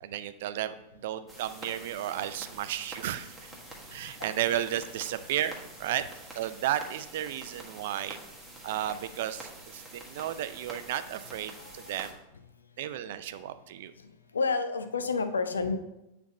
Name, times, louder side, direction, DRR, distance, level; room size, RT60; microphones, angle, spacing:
voice 1, 0.0-3.5 3.9-5.5 5.8-6.0 6.4-8.2 8.6-12.2 12.8-13.9, right 11 dB, 55° right, 12 dB, 0.4 m, -33 dB
sound 1, 1.3-12.1, right 2 dB, 5° right, 1.4 m, -47 dB
voice 2, 11.6-12.0 14.3-15.8, left 4 dB, 70° left, 10 dB, 0.5 m, -29 dB
8.3 x 3.5 x 4.0 m, 0.91 s
figure-of-eight pair, 90°, 0 cm